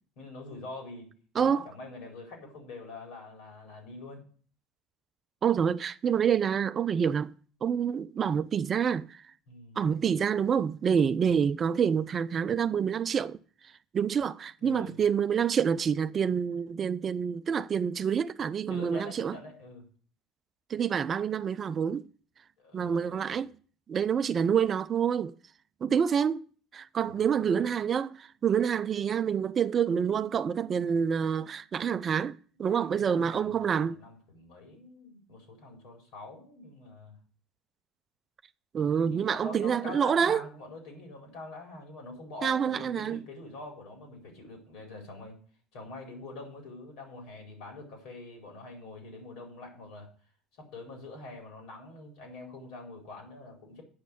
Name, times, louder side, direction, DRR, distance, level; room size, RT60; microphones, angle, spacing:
voice 1, 0.2-1.1 1.4-4.2 9.5-9.8 14.6-15.0 18.7-19.8 22.6-23.4 32.6-37.2 38.9-45.4 45.7-50.1 50.6-53.8, left 2 dB, 65° left, 4.4 m, -45 dB
voice 2, 1.3-1.7 5.4-7.3 7.6-9.2 9.8-13.4 13.9-19.4 20.7-22.1 22.7-23.5 23.9-25.3 25.8-26.4 26.7-34.0 38.7-40.4 42.4-43.2, right 7 dB, 40° right, 0.5 m, -27 dB
8.6 x 6.1 x 8.3 m
hypercardioid pair, 70°, 0 cm